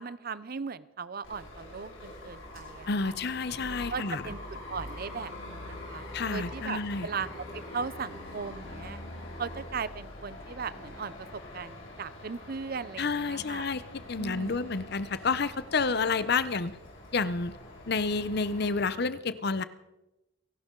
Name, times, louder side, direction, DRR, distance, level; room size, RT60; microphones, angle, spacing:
voice 1, 0.0-3.1 3.7-7.3 7.5-9.0 9.4-13.7 14.2-14.7, right 5 dB, 45° right, 17 dB, 0.6 m, -38 dB
sound 1, 1.2-18.9, left 1 dB, 80° left, 6.8 m, -44 dB
voice 2, 2.9-4.2 6.1-7.1 13.0-13.8 14.1-16.7 17.1-17.5 17.9-19.6, left 4 dB, 55° left, 15 dB, 0.7 m, -29 dB
29.0 x 12.0 x 3.8 m, 0.96 s
head